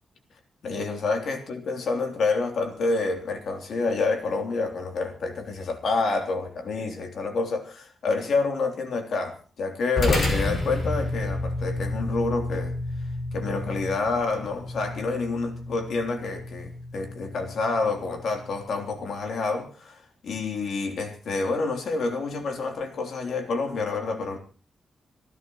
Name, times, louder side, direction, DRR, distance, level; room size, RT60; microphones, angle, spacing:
voice 1, 0.6-12.8 13.3-24.4, left 3 dB, 65° left, 3.3 m, -28 dB
sound 1, 10.0-18.6, left 2 dB, 45° left, 6.1 m, -31 dB
27.0 x 15.5 x 3.1 m
wide cardioid pair, 175°, 0 cm